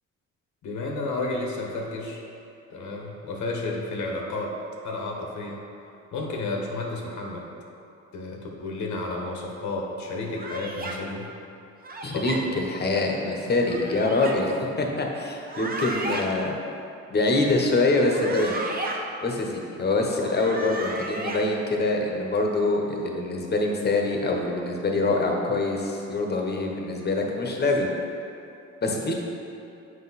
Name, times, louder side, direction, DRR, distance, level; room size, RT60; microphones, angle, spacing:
voice 1, 0.6-2.3 2.7-4.5 4.8-5.6 6.1-7.5 8.1-11.3 12.1-12.4, left 2 dB, 75° left, -1 dB, 1.2 m, -32 dB
sound 1, 10.4-11.0 11.8-12.4 13.5-14.3 15.4-16.2 17.9-19.0 20.1-21.4, right 2 dB, 30° right, 0.9 m, -34 dB
voice 2, 12.0-16.6 17.1-18.6 19.2-27.9 28.8-29.1, left 2 dB, 35° left, 1 dB, 1.1 m, -25 dB
7.7 x 5.1 x 4.2 m, 2.7 s
cardioid pair, 90°, 30 cm